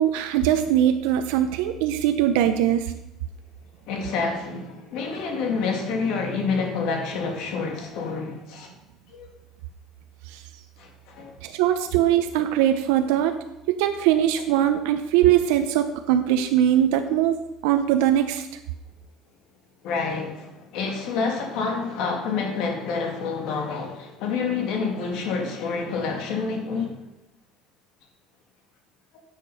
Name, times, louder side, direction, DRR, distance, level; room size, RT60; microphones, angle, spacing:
voice 1, 0.0-2.9 10.3-10.4 11.4-13.3 13.7-18.5, right 11 dB, 90° right, 0.7 m, -21 dB
voice 2, 3.9-8.7 9.1-9.3 10.8-11.4 19.8-27.0, left 4 dB, 60° left, 2.2 m, -28 dB
9.9 x 6.6 x 5.5 m
cardioid pair, 160°, 0 cm